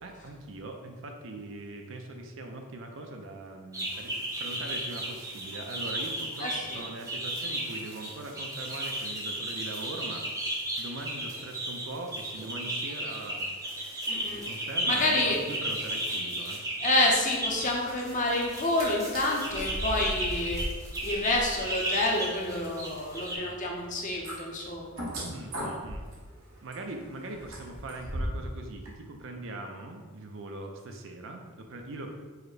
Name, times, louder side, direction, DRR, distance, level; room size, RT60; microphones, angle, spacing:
voice 1, 0.0-13.7 14.3-16.7 25.3-26.0 26.6-32.1, right 2 dB, 60° right, 3 dB, 0.5 m, -41 dB
sound 1, 3.7-23.4, right 1 dB, 15° right, 0.7 m, -34 dB
voice 2, 6.4-6.8 14.1-14.4 14.8-15.4 16.8-20.6 21.0-25.1, left 2 dB, 35° left, -1 dB, 0.7 m, -28 dB
sound 2, 18.6-18.9 19.1-28.5 28.9-29.0, equal, 80° right, 1.1 m, -39 dB
4.7 x 2.1 x 4.7 m, 1.4 s
head